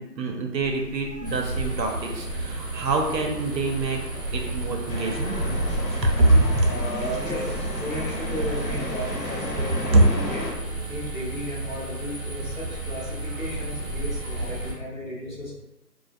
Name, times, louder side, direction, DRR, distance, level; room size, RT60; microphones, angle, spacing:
voice 1, 0.0-4.0 4.3-5.4 6.0-6.7 9.9-10.1, right 2 dB, 80° right, 1 dB, 0.7 m, -23 dB
sound 1, 0.6-14.6, left 1 dB, 5° right, 0.3 m, -46 dB
voice 2, 1.1-1.4 1.6-1.7 5.0-5.3 6.6-10.4 10.9-15.5, left 1 dB, 50° left, -5 dB, 0.8 m, -35 dB
sound 2, 1.2-14.7, right 2 dB, 50° right, 0.9 m, -32 dB
sound 3, 4.9-10.5, left 2 dB, 85° left, 0.9 m, -34 dB
2.3 x 2.2 x 2.5 m, 0.98 s
figure-of-eight pair, 180°, 50 cm